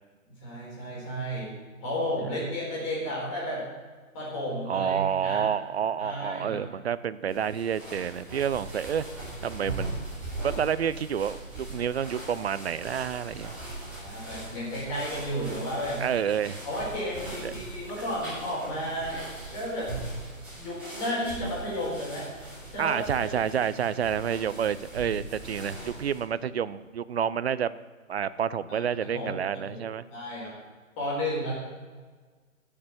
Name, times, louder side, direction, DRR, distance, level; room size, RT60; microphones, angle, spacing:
voice 1, 0.3-1.5 1.8-3.6 4.1-5.4 6.0-6.6 13.9-16.0 16.6-19.2 19.5-19.9 20.6-22.3 22.7-23.0 23.6-23.7 28.7-29.8 30.1-30.5 31.0-31.5, equal, 20° left, -5 dB, 4.4 m, -33 dB
voice 2, 4.7-9.1 9.4-9.9 10.4-11.4 11.7-13.5 16.0-16.6 17.4-17.5 22.8-27.8 28.1-30.0, right 8 dB, 50° right, 16 dB, 0.5 m, -29 dB
sound 1, 7.3-26.2, right 2 dB, 5° right, 3.2 m, -40 dB
12.5 x 6.8 x 7.2 m, 1.4 s
hypercardioid pair, 165°, 40 cm